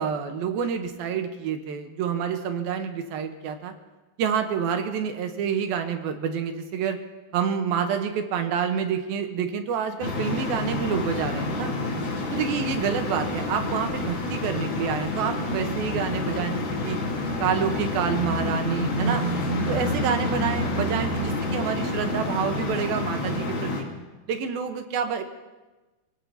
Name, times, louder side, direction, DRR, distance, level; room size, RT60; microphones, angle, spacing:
voice 1, 0.0-3.7 4.2-7.0 7.3-11.7 12.3-17.0 17.4-19.3 19.7-23.9 24.3-25.2, right 7 dB, 75° right, 6 dB, 2.7 m, -28 dB
sound 1, 10.0-23.8, left 2 dB, 65° left, 4.6 m, -28 dB
27.5 x 18.0 x 2.8 m, 1.2 s
omnidirectional pair, 4.7 m